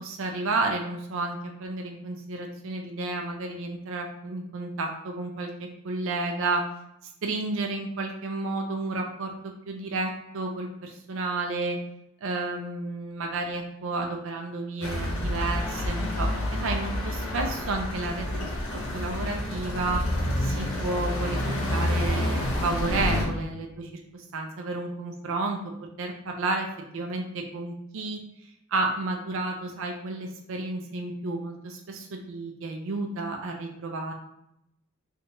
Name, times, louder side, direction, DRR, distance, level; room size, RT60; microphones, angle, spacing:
voice 1, 0.0-6.6 7.2-11.8 12.2-20.0 20.4-25.7 26.0-26.7 26.9-28.2 28.7-34.1, right 3 dB, 65° right, 2 dB, 0.5 m, -31 dB
sound 1, 14.8-23.3, left 1 dB, 80° left, 0.7 m, -28 dB
3.3 x 2.8 x 2.8 m, 0.81 s
head